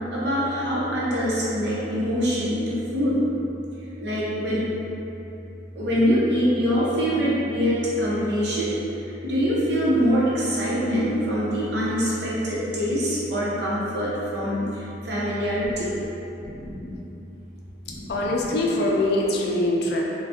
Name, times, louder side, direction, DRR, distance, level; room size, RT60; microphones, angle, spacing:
voice 1, 0.1-3.2 4.0-4.7 5.8-8.7 9.2-14.6 15.0-16.0 16.4-17.0, equal, 65° right, -7 dB, 0.7 m, -24 dB
voice 2, 17.8-20.0, left 1 dB, 60° left, -2 dB, 0.4 m, -23 dB
2.5 x 2.2 x 3.5 m, 2.8 s
head